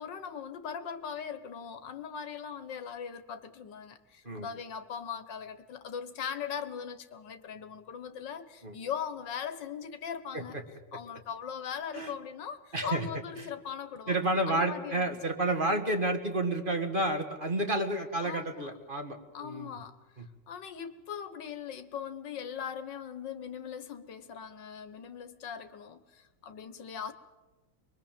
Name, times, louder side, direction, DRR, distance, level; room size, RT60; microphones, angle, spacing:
voice 1, 0.0-10.6 10.9-14.2 14.5-15.2 18.2-18.7 19.3-20.0 20.5-27.1, left 7 dB, 85° left, 2.0 m, -40 dB
voice 2, 12.7-13.1 14.1-19.7 20.2-20.3, right 2 dB, 30° right, 2.1 m, -30 dB
24.0 x 22.5 x 7.5 m
omnidirectional pair, 1.9 m